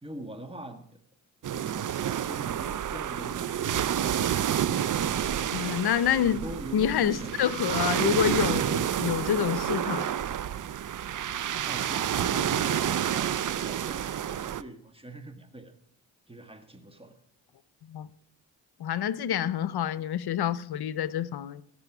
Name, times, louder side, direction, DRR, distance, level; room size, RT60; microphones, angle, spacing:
voice 1, 0.0-0.8 1.5-4.4 6.2-7.8 11.7-15.7 16.3-17.2, right 1 dB, 15° right, 7 dB, 1.6 m, -43 dB
sound 1, 1.4-14.6, right 10 dB, 50° right, 0.6 m, -29 dB
voice 2, 5.5-6.4 6.7-10.1 17.9-18.1 18.8-21.6, left 10 dB, 70° left, 17 dB, 0.7 m, -27 dB
16.5 x 6.2 x 6.1 m, 0.68 s
cardioid pair, 70°, 40 cm